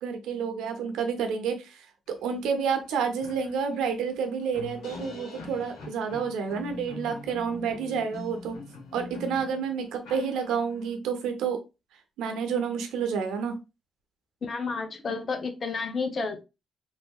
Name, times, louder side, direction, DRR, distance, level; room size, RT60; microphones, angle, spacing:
voice 1, 0.0-8.6 8.9-11.6 11.9-13.6, right 6 dB, 85° right, 6 dB, 0.7 m, -29 dB
sound 1, 2.4-2.5 2.8-10.9, left 3 dB, 80° left, 1.2 m, -43 dB
voice 2, 14.4-16.4, left 4 dB, 40° left, 7 dB, 0.7 m, -31 dB
3.3 x 2.7 x 2.3 m, 0.27 s
cardioid pair, 90°, 0 cm